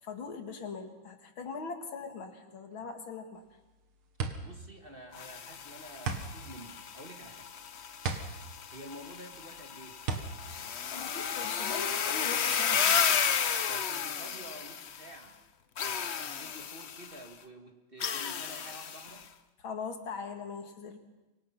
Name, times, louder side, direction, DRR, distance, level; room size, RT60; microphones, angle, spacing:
voice 1, 0.1-3.4 10.9-13.0 19.6-21.0, left 5 dB, 70° left, 5 dB, 2.7 m, -41 dB
sound 1, 3.4-11.7, right 5 dB, 90° right, 2.6 m, -38 dB
voice 2, 4.4-7.5 8.7-10.0 13.7-15.4 15.8-19.3, right 1 dB, 30° right, 4 dB, 1.8 m, -49 dB
sound 2, 5.1-15.2 15.8-17.2 18.0-19.2, left 7 dB, 55° left, 0.7 m, -33 dB
25.0 x 23.5 x 5.9 m, 1.1 s
omnidirectional pair, 2.3 m